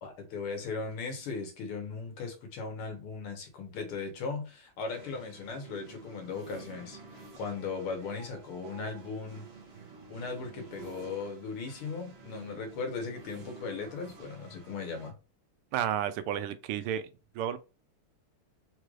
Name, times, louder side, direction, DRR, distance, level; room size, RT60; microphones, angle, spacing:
voice 1, 0.0-9.5 10.1-15.1, left 4 dB, 85° left, 2.1 m, -38 dB
sound 1, 4.9-15.1, right 4 dB, 60° right, 0.6 m, -50 dB
voice 2, 15.7-17.0 17.4-17.6, right 10 dB, 90° right, 1.5 m, -31 dB
4.6 x 3.1 x 2.4 m
omnidirectional pair, 2.4 m